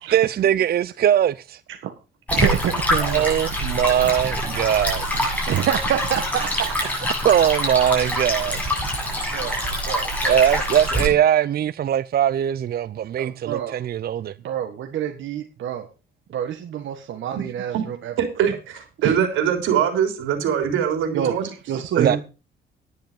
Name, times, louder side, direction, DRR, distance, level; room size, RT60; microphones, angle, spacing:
voice 1, 0.1-1.6 3.0-5.0 7.2-8.6 9.0-9.3 10.3-14.3 22.0-22.2, right 10 dB, 50° right, 0.5 m, -21 dB
Stream, 2.3-11.1, equal, 5° left, 7.8 m, -25 dB
voice 2, 2.3-3.3 5.5-6.9 9.3-10.4 13.2-13.9 14.4-15.9 16.3-18.1 19.0-19.2 21.1-21.4 21.7-22.2, right 9 dB, 75° right, 1.7 m, -27 dB
voice 3, 18.2-21.5 22.0-22.2, right 8 dB, 90° right, 3.6 m, -23 dB
10.5 x 10.5 x 5.3 m
cardioid pair, 90°, 20 cm